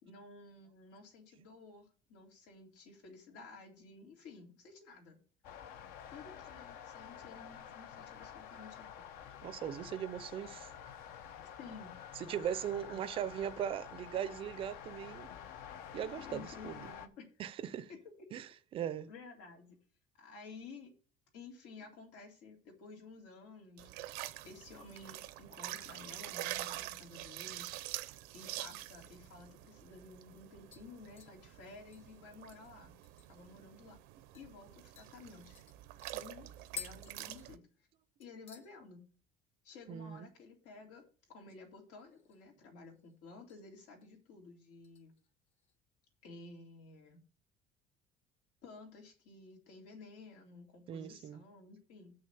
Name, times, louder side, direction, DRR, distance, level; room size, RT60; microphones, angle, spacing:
voice 1, 0.0-5.2 6.1-9.1 11.4-12.0 12.9-13.1 16.2-17.3 17.9-18.3 19.1-19.8 20.1-20.9 21.3-24.2 24.4-27.7 28.3-32.9 33.3-34.0 34.3-35.6 36.1-37.9 38.2-39.0 39.6-45.1 46.2-47.2 48.6-52.1, left 3 dB, 90° left, 3.4 m, -53 dB
sound 1, 5.4-17.1, left 9 dB, 70° left, 0.9 m, -49 dB
voice 2, 9.4-10.7 12.2-15.3 15.9-16.8 17.4-17.9 18.3-19.1 39.9-40.3 50.9-51.4, right 9 dB, 35° right, 0.5 m, -39 dB
sound 2, 23.8-37.6, right 16 dB, 85° right, 0.7 m, -46 dB
sound 3, 30.7-33.5 33.9-34.0 34.3-34.5 35.0-38.0 38.2-38.7 39.1-39.5 39.7-39.8 41.9-42.6 42.9-43.6 44.0-44.3 44.8-45.8 46.1-46.2, left 8 dB, 40° left, 0.8 m, -53 dB
7.1 x 6.4 x 6.9 m
cardioid pair, 175°, 16 cm